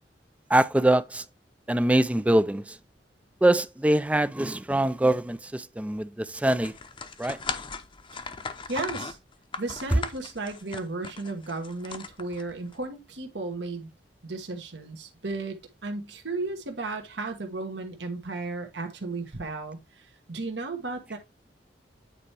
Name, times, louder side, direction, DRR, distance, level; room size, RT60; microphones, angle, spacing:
voice 1, 0.5-1.2 1.7-2.7 3.4-6.7 7.2-7.4, right 1 dB, 10° right, 0.3 m, -23 dB
sound 1, 6.6-12.7, left 4 dB, 30° left, 0.7 m, -38 dB
voice 2, 8.7-9.2 9.6-13.9 14.2-15.6 15.8-21.2, right 3 dB, 75° right, 1.3 m, -34 dB
8.9 x 4.3 x 3.3 m
head